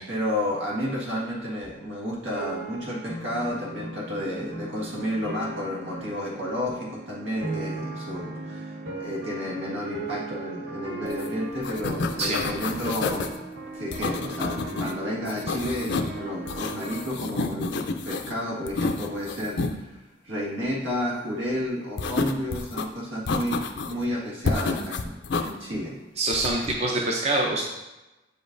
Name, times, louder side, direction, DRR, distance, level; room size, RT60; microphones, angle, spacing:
voice 1, 0.1-13.4 13.7-26.0, equal, 85° right, -4 dB, 1.8 m, -31 dB
sound 1, 2.3-17.1, right 2 dB, 55° right, 1.0 m, -37 dB
sound 2, 11.1-11.3 11.5-13.4 13.9-14.9 15.3-16.2 16.5-18.3 18.7-19.7 22.0-22.9 23.3-24.0 24.4-25.5 26.3-26.8, left 3 dB, 60° left, 0.4 m, -29 dB
voice 2, 26.2-27.6, right 2 dB, 35° right, -1 dB, 0.6 m, -25 dB
7.7 x 5.2 x 2.6 m, 1.0 s
head